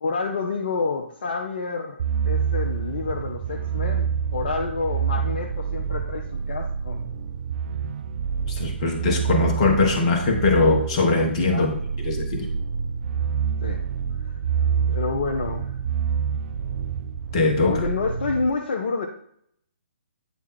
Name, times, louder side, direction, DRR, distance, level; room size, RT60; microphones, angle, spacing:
voice 1, 0.0-7.0 11.5-11.7 13.6-13.8 14.2-14.3 14.9-15.8 17.6-19.1, left 4 dB, 50° left, 2 dB, 0.7 m, -28 dB
sound 1, 2.0-18.5, right 7 dB, 45° right, 0.4 m, -27 dB
voice 2, 8.5-11.7 12.0-12.5 17.3-17.8, left 3 dB, 30° left, 3 dB, 1.2 m, -21 dB
9.3 x 3.6 x 4.3 m, 0.68 s
figure-of-eight pair, 135°, 6 cm